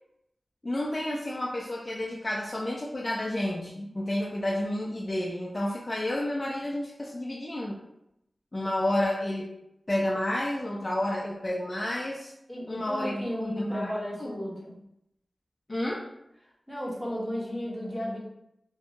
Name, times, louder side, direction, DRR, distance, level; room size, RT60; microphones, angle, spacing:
voice 1, 0.6-7.8 8.5-9.6 9.9-12.3 12.7-13.9 14.2-14.5 15.7-16.0, left 1 dB, 30° left, -3 dB, 0.3 m, -30 dB
voice 2, 12.5-14.7 16.7-18.2, equal, 5° right, -4 dB, 0.7 m, -34 dB
2.5 x 2.2 x 2.8 m, 0.81 s
wide cardioid pair, 90°, 0 cm